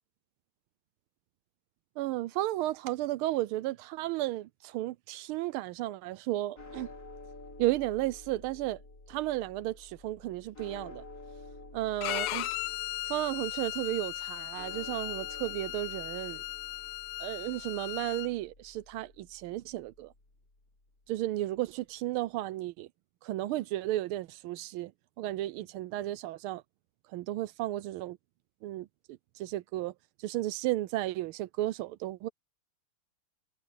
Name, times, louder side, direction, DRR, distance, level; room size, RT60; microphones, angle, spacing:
voice 1, 2.0-6.9 7.6-8.8 9.1-11.0 11.7-12.5 13.1-16.4 17.2-20.1 21.1-22.9 23.2-24.9 25.2-26.6 27.1-28.2 28.6-28.9 29.4-29.9 30.2-32.3, right 15 dB, 80° right, 1.4 m, -33 dB
sound 1, 6.6-20.8, left 2 dB, 40° left, 4.7 m, -51 dB
Bowed string instrument, 12.0-18.3, left 17 dB, 85° left, 1.5 m, -37 dB
omnidirectional pair, 2.4 m